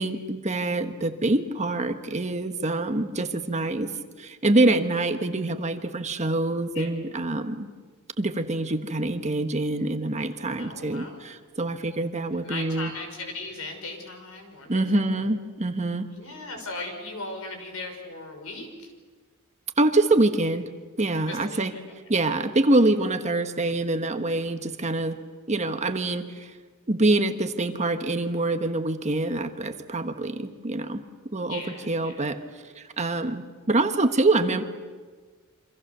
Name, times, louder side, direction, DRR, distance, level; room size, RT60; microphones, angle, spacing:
voice 1, 0.0-3.9 4.2-7.7 8.2-12.9 14.7-16.1 19.8-20.6 21.0-21.7 22.1-25.2 25.5-26.6 26.9-31.0 31.3-32.4 32.7-34.6, right 2 dB, 30° right, 7 dB, 1.4 m, -25 dB
voice 2, 10.6-11.2 12.3-15.2 16.1-18.9 21.3-21.8 31.4-32.3, left 2 dB, 70° left, 4 dB, 6.1 m, -38 dB
28.5 x 25.5 x 6.8 m, 1.5 s
head